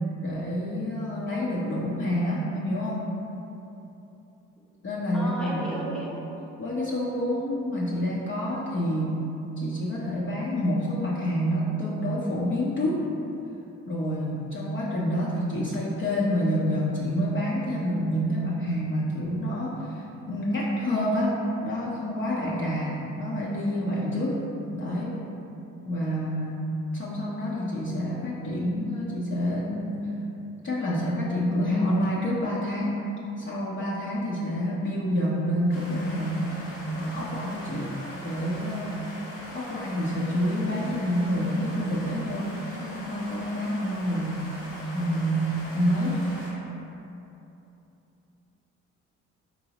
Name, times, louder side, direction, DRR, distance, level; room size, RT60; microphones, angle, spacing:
voice 1, 0.2-3.1 4.8-5.7 6.6-9.1 9.6-13.0 13.9-24.5 24.7-25.2 25.8-30.1 30.6-33.0 33.4-36.7 36.9-39.0 39.5-44.5 44.9-46.2, equal, 35° left, -6 dB, 0.6 m, -28 dB
voice 2, 5.1-6.2, equal, ahead, -5 dB, 0.8 m, -33 dB
sound 1, 35.7-46.5, left 1 dB, 80° left, 1.0 m, -41 dB
4.0 x 2.7 x 2.8 m, 2.9 s
hypercardioid pair, 45°, 36 cm